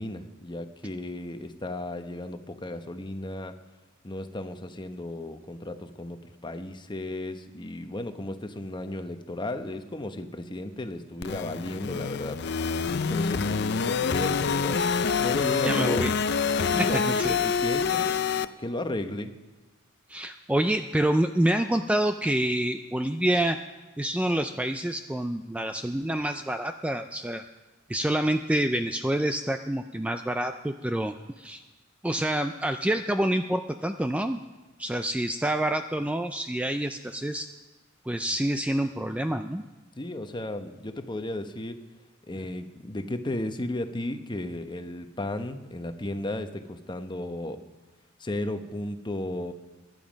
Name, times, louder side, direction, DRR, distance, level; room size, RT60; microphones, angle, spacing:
voice 1, 0.0-3.5 4.0-12.4 12.9-14.8 15.2-16.1 16.7-18.2 18.6-19.3 40.0-41.8 42.3-47.6 48.2-49.5, left 1 dB, 25° left, 8 dB, 0.9 m, -34 dB
sound 1, 11.2-18.5, left 5 dB, 55° left, 0.5 m, -26 dB
voice 2, 15.6-16.1 16.8-17.4 20.1-23.6 24.0-27.4 27.9-31.6 32.0-34.4 34.8-37.5 38.1-39.6, right 1 dB, 5° right, 7 dB, 0.4 m, -27 dB
22.0 x 11.0 x 5.2 m, 1.2 s
head